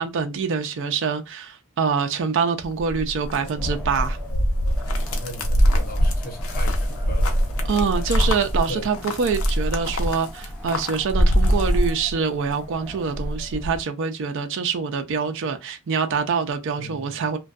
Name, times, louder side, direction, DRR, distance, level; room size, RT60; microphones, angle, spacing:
voice 1, 0.0-4.2 7.7-17.4, right 5 dB, 60° right, 0.4 m, -25 dB
sound 1, 2.6-12.5 12.9-13.8, equal, 80° left, 0.6 m, -23 dB
Wind, 3.3-13.6, left 1 dB, 5° left, 0.6 m, -42 dB
voice 2, 5.1-7.5 8.0-8.1 8.7-8.9 16.7-17.2, left 1 dB, 45° left, 0.7 m, -38 dB
2.5 x 2.2 x 2.2 m
head